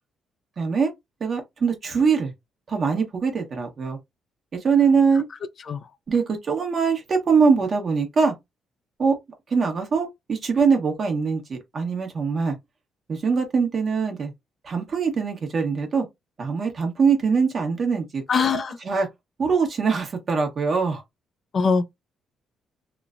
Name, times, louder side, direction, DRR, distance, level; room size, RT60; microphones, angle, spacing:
voice 1, 0.6-0.9 1.2-2.3 2.7-4.0 4.5-5.3 6.1-8.3 9.0-9.2 9.5-12.6 13.1-14.3 14.6-16.1 16.4-18.2 18.9-19.1 19.4-21.0, right 5 dB, 45° right, 1.1 m, -22 dB
voice 2, 18.3-18.8 21.5-21.9, left 5 dB, 50° left, 0.4 m, -22 dB
3.0 x 2.1 x 2.5 m
cardioid pair, 90°, 0 cm